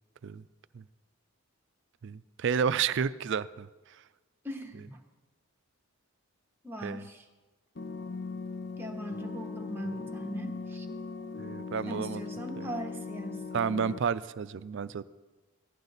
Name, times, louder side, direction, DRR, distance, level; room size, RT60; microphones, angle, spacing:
voice 1, 2.0-3.7 6.8-7.0 11.4-12.2 13.5-15.1, right 6 dB, 55° right, 15 dB, 0.4 m, -31 dB
voice 2, 4.4-5.0 6.6-7.3 8.8-10.9 11.9-13.4, equal, 10° right, 2 dB, 1.0 m, -39 dB
sound 1, 7.8-14.0, left 4 dB, 50° left, 0.6 m, -39 dB
15.0 x 11.5 x 4.0 m, 1.2 s
head